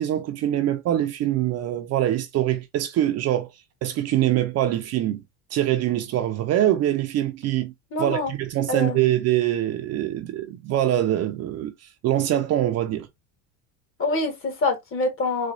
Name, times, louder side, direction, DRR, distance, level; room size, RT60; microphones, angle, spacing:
voice 1, 0.0-3.5 3.8-5.2 5.5-7.7 8.0-11.7 12.0-13.1, right 12 dB, 40° right, 0.5 m, -24 dB
voice 2, 7.9-8.3 8.7-9.0 14.0-15.5, left 2 dB, 35° left, 1.3 m, -25 dB
4.2 x 2.3 x 2.4 m
cardioid pair, 130°, 38 cm